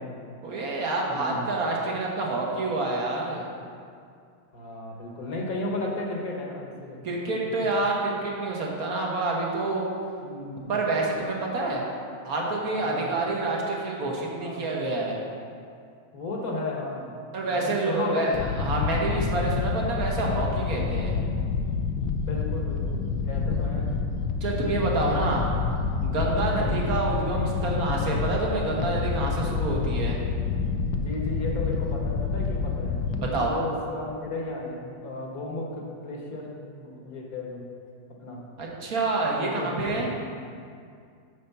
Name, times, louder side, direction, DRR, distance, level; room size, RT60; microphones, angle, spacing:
voice 1, 0.4-3.4 7.0-9.8 10.7-11.8 12.2-15.1 17.3-21.1 24.4-25.4 26.0-30.2 33.3-33.5 38.6-40.1, right 2 dB, 50° right, -2 dB, 1.5 m, -27 dB
voice 2, 1.1-1.4 4.5-7.4 10.2-10.7 12.8-13.2 14.3-14.9 16.1-18.3 22.2-23.9 25.0-25.4 26.4-26.8 31.0-37.6 38.2-38.4 39.4-40.0, left 2 dB, 55° left, -1 dB, 1.4 m, -35 dB
sound 1, 18.3-33.4, left 5 dB, 80° left, 1.3 m, -28 dB
7.0 x 5.0 x 6.6 m, 2.3 s
omnidirectional pair, 2.1 m